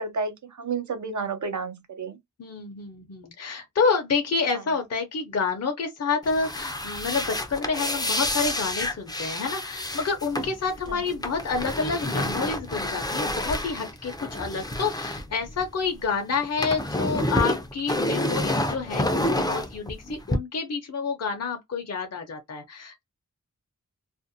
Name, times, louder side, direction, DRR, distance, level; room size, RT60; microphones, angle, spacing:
voice 1, 0.0-2.2 10.9-11.0, right 4 dB, 65° right, 0.7 m, -31 dB
voice 2, 2.4-23.0, left 5 dB, 55° left, 0.7 m, -28 dB
sound 1, 6.2-16.0 16.3-20.4, left 1 dB, 15° left, 0.5 m, -29 dB
2.5 x 2.1 x 2.6 m
wide cardioid pair, 105°, 31 cm